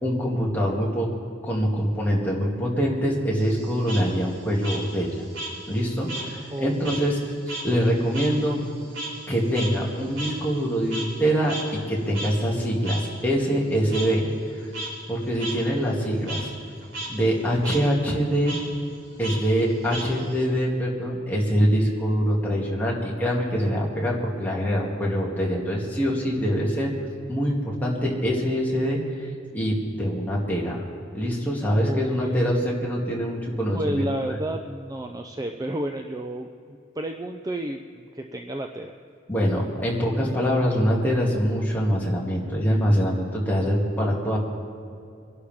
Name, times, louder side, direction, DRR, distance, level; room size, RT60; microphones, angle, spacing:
voice 1, 0.0-1.1 1.4-5.1 5.7-7.2 7.5-8.6 9.3-11.6 11.9-14.3 15.1-16.5 17.1-18.6 19.2-26.9 27.3-29.0 29.5-30.8 31.1-34.1 39.3-44.4, equal, 10° left, -4 dB, 2.4 m, -24 dB
Frog, 3.4-6.3 6.6-11.2 11.5-11.6 12.1-12.3 12.8-13.0 13.9-14.1 14.6-14.9 15.4-15.5 15.9-16.4 16.8-17.1 17.4-17.8 18.4-18.6 19.2-20.4, right 2 dB, 85° right, 4.4 m, -35 dB
voice 2, 6.5-7.1 31.8-32.4 33.7-38.9, right 1 dB, 20° right, 4 dB, 0.5 m, -31 dB
24.5 x 11.5 x 3.6 m, 2.5 s
head